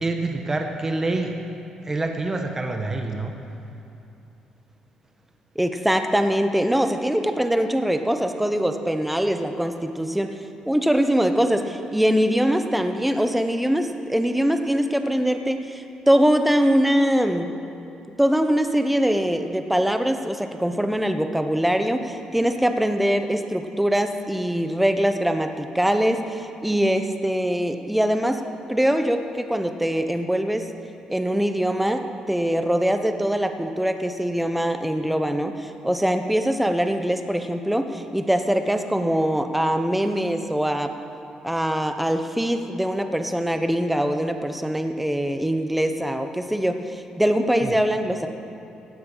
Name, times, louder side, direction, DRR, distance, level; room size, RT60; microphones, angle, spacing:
voice 1, 0.0-1.4 1.8-3.3 47.6-47.7, right 2 dB, 20° right, 3 dB, 1.3 m, -26 dB
voice 2, 5.6-10.3 10.6-17.5 18.2-28.4 28.7-30.7 31.1-40.9 41.4-48.3, equal, 5° right, 7 dB, 1.0 m, -23 dB
16.0 x 9.4 x 5.6 m, 2.9 s
cardioid pair, 85°, 2 cm